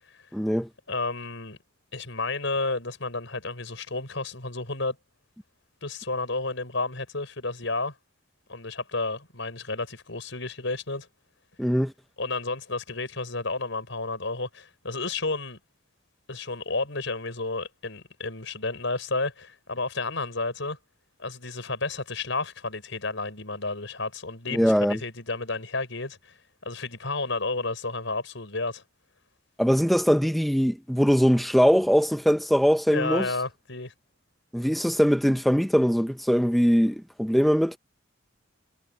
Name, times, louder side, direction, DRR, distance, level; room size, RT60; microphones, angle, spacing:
voice 1, 0.3-0.7 11.6-11.9 24.5-25.0 29.6-33.3 34.5-37.8, equal, ahead, 0.6 m, -21 dB
voice 2, 0.9-1.6 1.9-5.0 5.8-7.9 8.5-11.1 12.2-15.6 16.3-20.8 21.2-26.4 26.6-28.8 32.9-33.9, left 3 dB, 70° left, 6.0 m, -31 dB
head